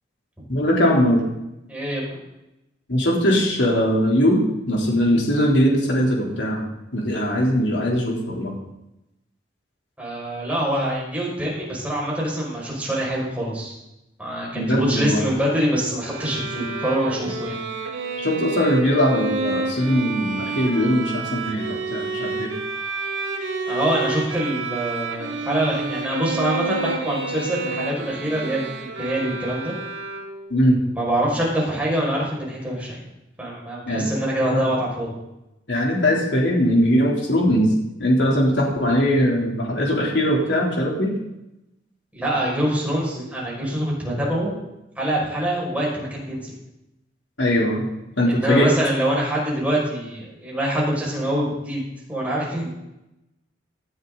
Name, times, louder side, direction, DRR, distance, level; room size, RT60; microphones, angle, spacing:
voice 1, 0.5-1.2 2.9-4.4 4.7-8.5 14.5-15.3 18.2-22.5 30.5-30.9 33.9-34.1 34.5-34.6 35.7-37.7 38.0-41.1 47.4-47.9 48.2-48.7, equal, 70° left, -1 dB, 3.7 m, -20 dB
voice 2, 1.7-2.2 10.0-13.8 14.2-17.6 23.7-29.7 30.9-33.0 33.4-35.2 42.1-44.5 45.0-46.6 48.3-51.8 52.1-52.7, right 1 dB, 10° right, -5 dB, 6.2 m, -25 dB
Bowed string instrument, 16.1-30.6, right 4 dB, 75° right, 3.0 m, -29 dB
19.0 x 12.5 x 4.1 m, 0.91 s
head